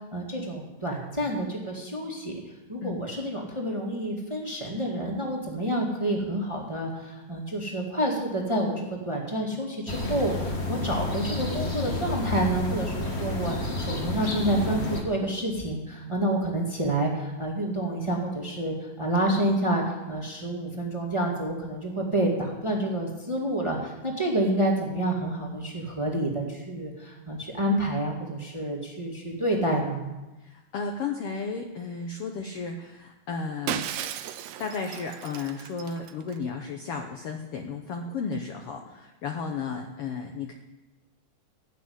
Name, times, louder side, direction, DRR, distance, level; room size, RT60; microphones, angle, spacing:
voice 1, 0.1-2.4 2.7-30.1, right 1 dB, 10° right, -1 dB, 1.5 m, -28 dB
sound 1, 9.9-15.0, left 2 dB, 30° left, 1.2 m, -30 dB
voice 2, 30.4-33.9 34.6-40.5, left 5 dB, 70° left, 3 dB, 1.5 m, -34 dB
Shatter, 33.7-36.4, right 11 dB, 80° right, 1.4 m, -35 dB
15.0 x 6.1 x 9.6 m, 1.1 s
omnidirectional pair, 3.7 m